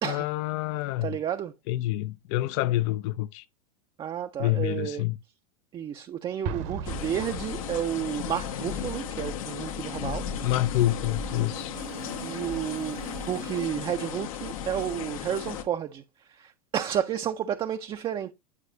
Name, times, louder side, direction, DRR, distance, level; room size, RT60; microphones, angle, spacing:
voice 1, 0.0-1.1 1.7-3.4 4.4-5.2 10.4-11.8, left 16 dB, 55° left, 0.4 m, -27 dB
voice 2, 1.0-1.5 4.0-5.0 5.7-10.3 12.2-18.3, right 10 dB, 30° right, 0.5 m, -31 dB
Explosion, 6.4-8.2, right 6 dB, 60° right, 1.0 m, -36 dB
sound 1, 6.4-6.5 6.8-6.9 7.3-7.5 7.7-13.7, right 12 dB, 80° right, 0.8 m, -45 dB
sound 2, 6.8-15.6, left 8 dB, 75° left, 1.0 m, -35 dB
9.6 x 4.8 x 2.7 m
hypercardioid pair, 95°, 18 cm